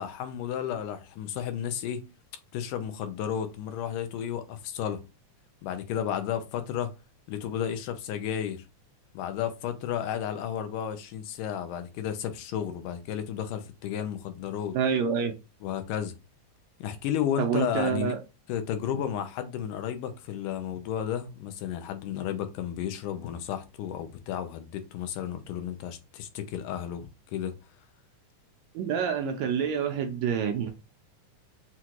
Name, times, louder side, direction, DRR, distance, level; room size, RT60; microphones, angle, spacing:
voice 1, 0.0-2.1 2.5-5.0 5.6-6.9 7.3-8.6 9.1-14.8 15.6-16.2 16.8-18.1 18.5-27.5, left 9 dB, 90° left, 2.3 m, -33 dB
voice 2, 14.7-15.3 17.4-18.2 28.7-30.7, right 7 dB, 75° right, 1.7 m, -27 dB
6.1 x 2.4 x 2.9 m
omnidirectional pair, 3.6 m